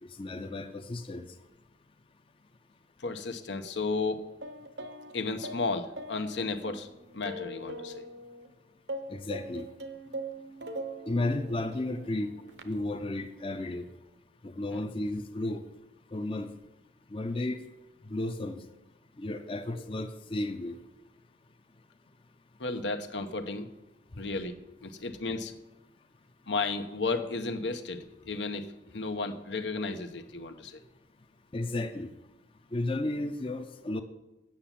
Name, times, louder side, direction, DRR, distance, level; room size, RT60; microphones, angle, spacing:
voice 1, 0.0-1.2 9.1-9.7 11.1-12.3 12.6-13.8 14.4-15.6 16.1-16.5 17.1-17.6 18.1-18.6 19.2-20.8 31.5-32.1 32.7-34.0, left 2 dB, 30° left, 8 dB, 0.5 m, -33 dB
voice 2, 3.0-4.3 5.1-6.9 7.1-8.1 14.7-14.8 22.6-23.7 24.2-24.6 24.8-25.5 26.5-30.8, left 3 dB, 80° left, 9 dB, 0.9 m, -33 dB
sound 1, 4.4-8.5 8.9-12.8, right 1 dB, 75° right, 0.9 m, -42 dB
8.7 x 7.0 x 7.3 m, 0.98 s
head